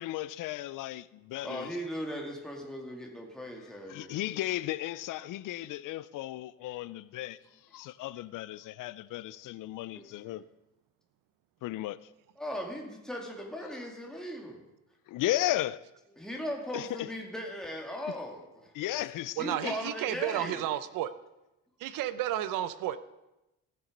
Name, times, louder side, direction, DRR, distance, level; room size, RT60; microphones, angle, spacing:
voice 1, 0.0-1.8 3.9-7.4 7.7-10.4 11.6-12.0 15.1-15.8 16.7-17.1 18.7-19.7, left 15 dB, 75° left, 0.6 m, -35 dB
voice 2, 1.4-4.2 9.9-10.3 12.4-14.6 16.2-18.7 19.4-20.7, equal, ahead, 2.3 m, -38 dB
voice 3, 19.4-21.1 21.8-23.0, right 12 dB, 90° right, 0.8 m, -32 dB
16.0 x 7.0 x 5.2 m
cardioid pair, 130°, 32 cm